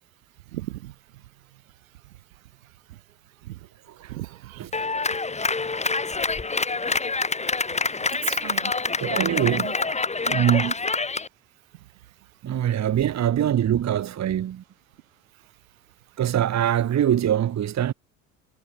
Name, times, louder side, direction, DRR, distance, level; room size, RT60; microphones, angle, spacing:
voice 1, 0.5-0.9 3.5-3.6 4.1-4.8 8.1-9.7, right 16 dB, 80° right, 4.4 m, -36 dB
Clapping, 4.7-11.3, left 3 dB, 15° left, 1.8 m, -26 dB
voice 2, 9.0-9.7 10.3-10.7 12.4-14.6 16.2-17.9, right 10 dB, 40° right, 1.7 m, -23 dB
hypercardioid pair, 60°, 41 cm